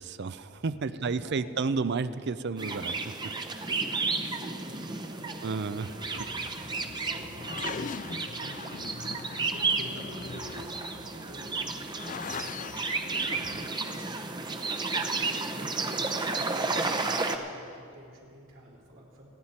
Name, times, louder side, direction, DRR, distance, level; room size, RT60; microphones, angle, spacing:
voice 1, 0.0-2.9 3.2-3.3 5.4-6.0, right 4 dB, 60° right, 14 dB, 0.5 m, -31 dB
voice 2, 0.9-1.7 2.5-2.7 3.3-5.4 5.9-6.0 6.6-14.2 14.6-16.2 16.6-19.3, right 1 dB, 75° right, -3 dB, 3.8 m, -49 dB
sound 1, 2.6-17.4, right 3 dB, 20° right, 0.8 m, -32 dB
sound 2, 5.9-13.7, left 5 dB, 40° left, 0.4 m, -41 dB
27.0 x 9.6 x 4.4 m, 2.6 s
head